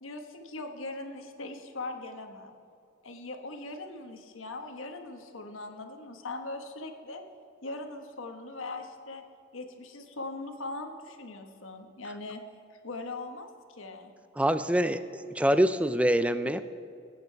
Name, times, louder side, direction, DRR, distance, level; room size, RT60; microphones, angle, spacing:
voice 1, 0.0-2.6 3.0-7.2 7.6-9.2 9.5-12.4 12.8-14.1, left 2 dB, 80° left, 5 dB, 1.3 m, -40 dB
voice 2, 14.4-16.6, right 1 dB, 5° right, 12 dB, 0.4 m, -25 dB
19.0 x 9.3 x 4.7 m, 2.5 s
head